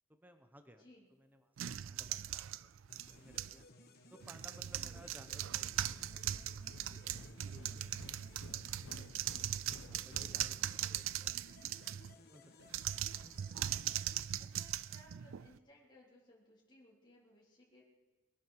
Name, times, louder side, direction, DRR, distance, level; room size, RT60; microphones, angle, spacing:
voice 1, 0.1-0.8 1.1-3.7 4.1-7.9 8.3-8.5 9.9-10.8 11.1-11.3 12.2-12.9, equal, 10° right, 7 dB, 1.0 m, -60 dB
voice 2, 0.8-1.1 4.7-5.0 9.9-10.0 10.8-11.1 13.0-13.4 14.4-17.8, left 1 dB, 25° left, -4 dB, 3.4 m, -63 dB
sound 1, 1.6-3.6 4.2-12.1 12.7-15.6, right 12 dB, 85° right, 0.4 m, -40 dB
sound 2, 2.9-15.0, left 2 dB, 55° left, 1.7 m, -61 dB
sound 3, 4.9-11.0, left 2 dB, 85° left, 1.0 m, -55 dB
22.0 x 11.5 x 4.7 m, 1.3 s
head